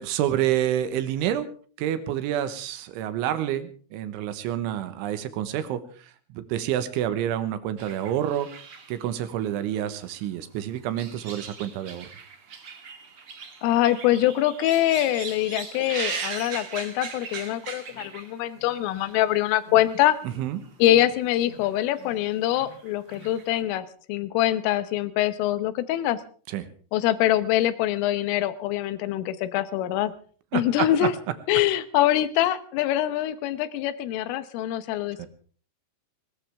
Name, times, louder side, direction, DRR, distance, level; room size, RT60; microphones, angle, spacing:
voice 1, 0.0-1.5 1.8-8.5 8.9-12.1 20.4-20.6 26.5-26.7 30.5-31.1 35.2-35.3, right 11 dB, 80° right, 12 dB, 3.4 m, -28 dB
sound 1, 7.8-10.2 10.6-18.5 18.9-19.2 19.8-20.4 20.6-20.7 21.6-22.0 22.3-23.6, right 6 dB, 60° right, 1.4 m, -39 dB
voice 2, 13.6-20.2 20.8-26.2 26.9-30.1 30.5-31.1 31.5-35.3, left 13 dB, 85° left, 14 dB, 3.6 m, -24 dB
sound 2, 17.5-17.6 17.9-18.1 18.5-18.7 19.1-19.2 19.7-19.8 20.2-20.5 20.8-21.1 21.4-21.7 22.0-22.2 22.5-22.8 23.1-23.3 23.6-23.8, left 4 dB, 65° left, 6.1 m, -48 dB
19.5 x 19.0 x 3.5 m, 0.42 s
omnidirectional pair, 5.7 m